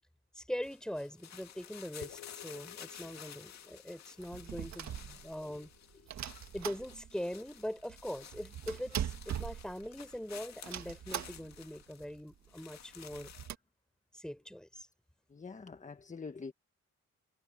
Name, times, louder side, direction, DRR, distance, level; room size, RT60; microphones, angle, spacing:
voice 1, 0.3-5.7 6.5-13.3 14.1-14.9, equal, ahead, 4.9 m, -42 dB
sound 1, 0.6-13.5, left 9 dB, 60° left, 2.4 m, -53 dB
sound 2, 2.0-6.8, left 14 dB, 80° left, 3.2 m, -57 dB
sound 3, 4.2-5.6 6.1-7.3 7.6-7.7 7.9-10.2 10.6-11.7 12.0-12.1 12.3-12.5 13.0-13.6, right 10 dB, 65° right, 1.8 m, -41 dB
voice 2, 15.3-16.5, left 4 dB, 25° left, 1.4 m, -45 dB
cardioid pair, 90°, 30 cm